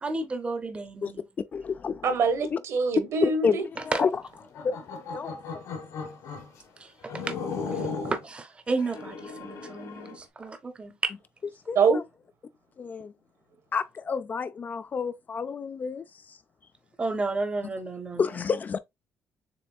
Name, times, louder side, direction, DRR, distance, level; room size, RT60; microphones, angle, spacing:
voice 1, 0.0-1.2 3.9-4.0 6.8-7.3 7.7-11.1 17.0-18.2, right 3 dB, 20° right, 0.7 m, -32 dB
voice 2, 1.0-2.1 2.5-2.6 3.2-4.2 4.6-4.8 5.1-5.4 11.7-12.0 12.8-13.1 13.7-16.4 18.1-18.8, left 5 dB, 30° left, 0.3 m, -29 dB
voice 3, 2.0-3.6 11.7-12.0 18.1-18.2, right 5 dB, 60° right, 1.4 m, -24 dB
sound 1, 4.4-6.5 7.1-8.2 8.8-10.2, left 4 dB, 75° left, 1.5 m, -36 dB
6.9 x 3.3 x 2.3 m
cardioid pair, 165°, 6 cm